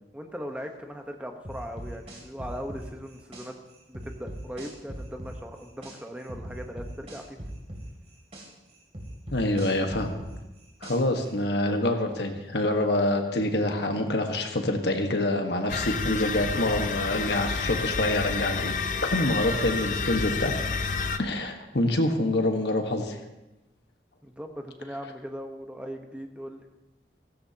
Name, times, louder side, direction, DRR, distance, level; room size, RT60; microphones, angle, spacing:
voice 1, 0.1-3.6 3.9-7.4 11.6-11.8 24.2-26.6, equal, 5° right, 4 dB, 1.0 m, -39 dB
sound 1, 1.4-3.5 3.9-6.0 6.3-8.5 8.9-11.2, right 1 dB, 35° right, 2.7 m, -39 dB
voice 2, 9.3-10.1 10.8-18.7 19.0-20.9 21.2-23.1, left 1 dB, 75° left, 4 dB, 1.4 m, -26 dB
sound 2, 15.7-21.2, left 4 dB, 45° left, 0.6 m, -29 dB
16.0 x 15.0 x 2.9 m, 1.0 s
head